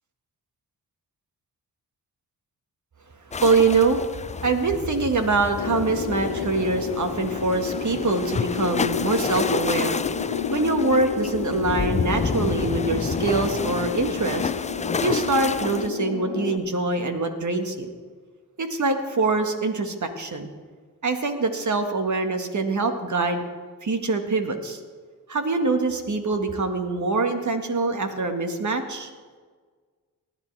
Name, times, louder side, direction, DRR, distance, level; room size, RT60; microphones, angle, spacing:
sound 1, 3.3-15.9, left 5 dB, 20° left, 0.4 m, -30 dB
voice 1, 3.4-4.0 4.4-10.0 10.5-14.5 15.0-17.9 18.6-20.5 21.0-23.5 23.8-24.8 25.3-29.1, right 3 dB, 45° right, 6 dB, 1.8 m, -24 dB
sound 2, 5.6-16.6, left 7 dB, 70° left, 1.0 m, -30 dB
19.0 x 10.5 x 3.4 m, 1.5 s
supercardioid pair, 50°, 41 cm